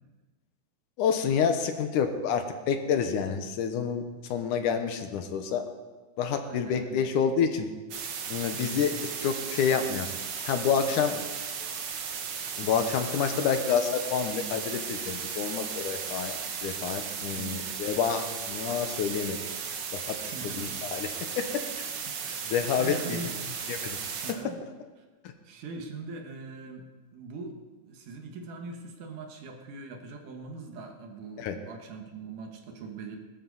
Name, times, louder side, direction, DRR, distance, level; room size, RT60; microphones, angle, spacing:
voice 1, 1.0-5.7 6.2-7.7 8.3-8.9 9.2-10.1 10.4-11.1 12.6-16.3 16.6-19.4 19.9-20.2 20.4-21.1 21.4-21.5 22.5-23.2 23.7-24.0 31.4-31.6, left 7 dB, 75° left, 7 dB, 2.5 m, -28 dB
voice 2, 6.4-7.1 8.5-8.9 11.1-11.2 17.3-17.8 20.2-20.8 22.1-23.4 24.2-24.6 25.4-26.8 27.1-33.2, right 3 dB, 75° right, 3 dB, 3.0 m, -42 dB
sound 1, 7.9-24.3, right 6 dB, 60° right, 1.6 m, -36 dB
20.5 x 12.0 x 4.1 m, 1.3 s
omnidirectional pair, 3.7 m